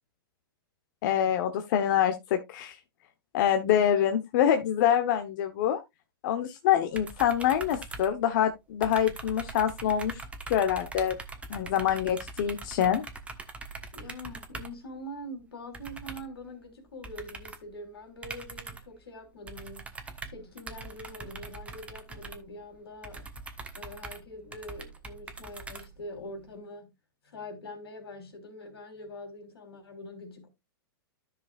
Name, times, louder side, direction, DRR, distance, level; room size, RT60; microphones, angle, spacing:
voice 1, 1.0-2.8 3.3-5.8 6.2-10.2 10.5-11.2 11.5-13.0, left 10 dB, 55° left, 1.0 m, -25 dB
sound 1, 7.0-8.5 8.8-14.8 15.7-16.4 17.0-17.7 18.2-19.0 19.5-26.3, right 3 dB, 10° right, 1.2 m, -42 dB
voice 2, 13.9-19.9 20.3-23.3 23.8-26.9 27.2-30.5, left 1 dB, 85° left, 3.6 m, -44 dB
13.5 x 5.9 x 2.4 m
hypercardioid pair, 125°, 13 cm